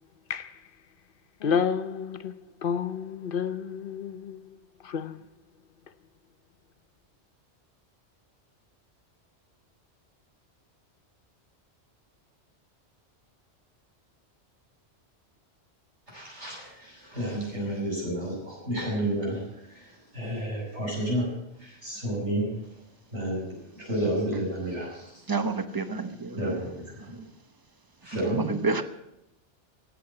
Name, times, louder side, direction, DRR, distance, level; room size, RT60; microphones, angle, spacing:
voice 1, 1.4-2.3 2.6-4.6 4.8-5.2, left 7 dB, 55° left, 0.9 m, -30 dB
voice 2, 16.1-21.3 21.6-22.8 23.1-25.2 26.3-27.2 28.0-28.5, right 1 dB, 80° right, 6.8 m, -31 dB
voice 3, 25.3-26.5 27.0-27.3 28.2-28.8, right 4 dB, 20° right, 0.8 m, -29 dB
15.5 x 8.4 x 8.5 m
omnidirectional pair, 1.2 m